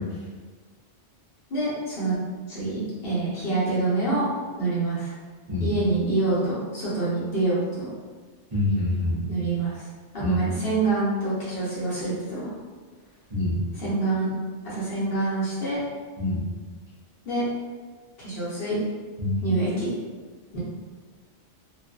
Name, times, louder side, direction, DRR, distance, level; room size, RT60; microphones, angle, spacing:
voice 1, 1.5-2.1 2.5-4.3 4.6-5.1 5.6-7.9 9.3-9.9 10.1-12.5 13.7-14.3 14.6-15.8 17.2-17.5 18.2-18.8 19.4-19.9 20.5-20.6, right 2 dB, 55° left, -9 dB, 1.0 m, -26 dB
voice 2, 8.5-9.3 10.2-10.3 13.3-13.5 16.2-16.4 19.2-19.4, left 2 dB, 35° right, -12 dB, 0.5 m, -25 dB
2.4 x 2.4 x 2.3 m, 1.5 s
omnidirectional pair, 1.2 m